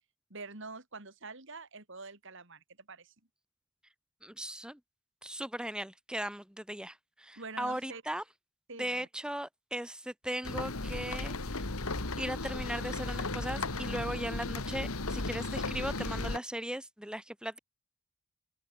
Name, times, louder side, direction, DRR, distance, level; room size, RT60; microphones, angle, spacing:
voice 1, 0.3-3.1 7.4-8.0 8.7-9.1, right 3 dB, 60° right, 3.4 m, -46 dB
voice 2, 4.2-4.8 5.2-8.2 8.8-11.7 12.2-17.6, right 1 dB, 5° right, 2.3 m, -38 dB
sound 1, 10.4-16.4, left 2 dB, 85° left, 2.3 m, -35 dB
open air
head